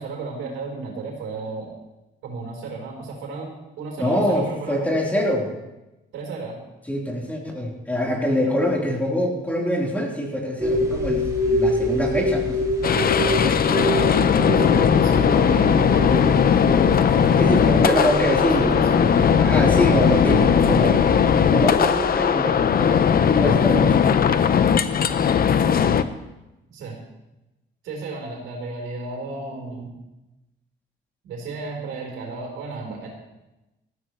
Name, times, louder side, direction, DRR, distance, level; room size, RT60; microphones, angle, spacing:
voice 1, 0.0-1.7 2.2-3.5 3.8-4.8 6.1-6.6 8.4-8.6 14.0-16.1 17.4-19.2 26.7-27.0 27.8-29.9 31.2-33.1, right 3 dB, 90° right, -1 dB, 4.2 m, -34 dB
voice 2, 4.0-5.5 6.9-12.7 13.2-13.6 17.3-18.8 19.4-21.1 21.5-24.0, equal, 5° left, -3 dB, 4.0 m, -24 dB
sound 1, 10.6-22.2, equal, 15° right, 3.2 m, -26 dB
sound 2, 12.8-26.0, left 7 dB, 50° left, 0.8 m, -18 dB
18.0 x 14.5 x 3.3 m, 0.98 s
cardioid pair, 90°, 20 cm